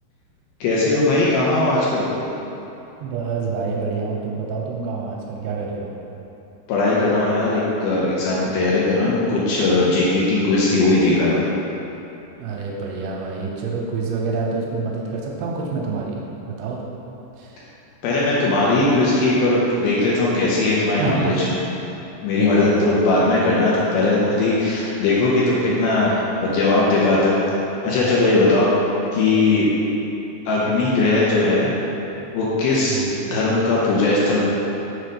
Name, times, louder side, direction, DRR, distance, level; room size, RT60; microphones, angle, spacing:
voice 1, 0.6-2.1 6.7-11.4 18.0-21.5 22.2-27.4 27.8-28.7 29.1-29.7 30.5-31.7 32.3-33.0 33.3-34.4, left 2 dB, 80° left, -6 dB, 2.3 m, -19 dB
voice 2, 3.0-5.9 12.4-16.2 16.5-16.8 17.3-17.6 21.0-21.7 22.4-23.0 32.9-33.4, right 4 dB, 85° right, -2 dB, 2.8 m, -27 dB
6.5 x 4.2 x 5.0 m, 3.0 s
omnidirectional pair, 5.0 m